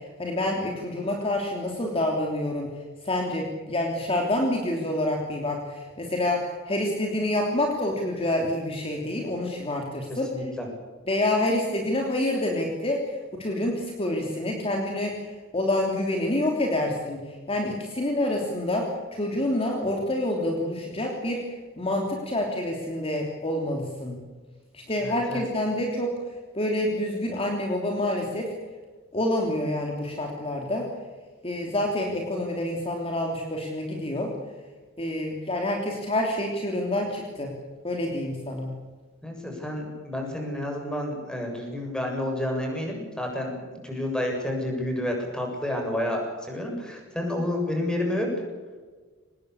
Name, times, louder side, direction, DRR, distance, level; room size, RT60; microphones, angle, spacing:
voice 1, 0.0-2.7 3.0-10.3 11.0-24.2 24.7-26.1 26.5-28.5 29.1-30.9 31.4-34.3 35.0-37.6 37.8-38.8, left 1 dB, 30° left, 0 dB, 3.2 m, -27 dB
voice 2, 10.1-10.7 25.0-25.4 39.2-43.5 43.8-48.3, left 1 dB, 5° left, 1 dB, 7.5 m, -30 dB
24.5 x 20.0 x 8.6 m, 1.4 s
head